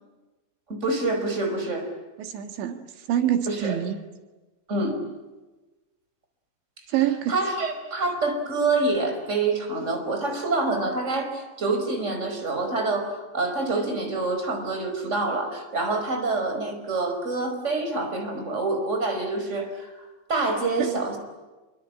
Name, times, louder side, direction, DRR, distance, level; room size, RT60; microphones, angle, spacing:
voice 1, 0.7-1.9 3.5-3.8 4.7-5.0 7.3-21.2, right 3 dB, 15° right, 5 dB, 4.9 m, -26 dB
voice 2, 2.2-4.0 6.9-7.4 20.8-20.9, right 11 dB, 90° right, 7 dB, 4.1 m, -26 dB
27.0 x 24.0 x 8.8 m, 1.2 s
omnidirectional pair, 5.1 m